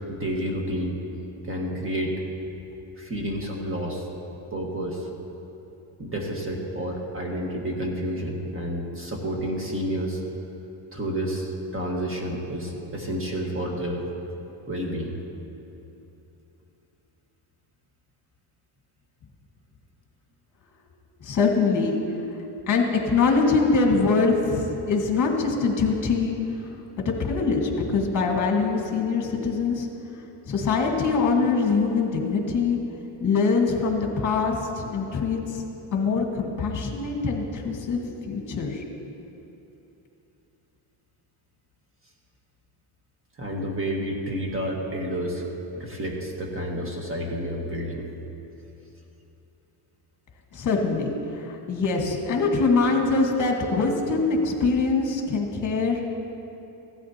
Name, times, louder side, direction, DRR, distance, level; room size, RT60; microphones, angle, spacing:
voice 1, 0.1-1.0 1.4-2.2 3.0-4.1 4.5-5.1 6.0-10.2 10.9-14.1 14.7-15.2 43.4-45.4 45.8-48.0, equal, 25° right, 0 dB, 1.7 m, -30 dB
voice 2, 21.2-22.0 22.2-22.3 22.7-26.3 27.1-29.9 30.5-32.8 33.2-35.6 35.9-38.0 38.3-38.8 50.5-56.0, left 4 dB, 40° left, 1 dB, 1.8 m, -23 dB
16.0 x 12.5 x 3.0 m, 3.0 s
cardioid pair, 135°, 48 cm